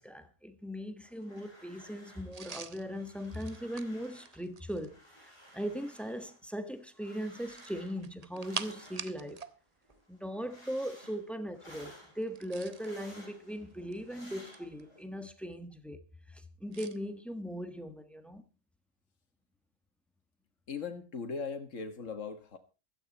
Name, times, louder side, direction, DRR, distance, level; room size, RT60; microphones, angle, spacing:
voice 1, 0.0-9.4 10.1-18.4, equal, ahead, 1.4 m, -39 dB
sound 1, 1.0-2.4 2.6-4.4 4.7-9.5 9.8-15.0, equal, 25° left, 7.4 m, -56 dB
sound 2, 2.3-5.0 7.4-9.6 9.8-10.0 12.2-12.9 13.7-14.8 16.7-17.0, right 5 dB, 35° right, 0.9 m, -45 dB
voice 2, 20.7-22.6, left 5 dB, 85° left, 1.9 m, -39 dB
16.0 x 12.5 x 4.2 m
omnidirectional pair, 1.3 m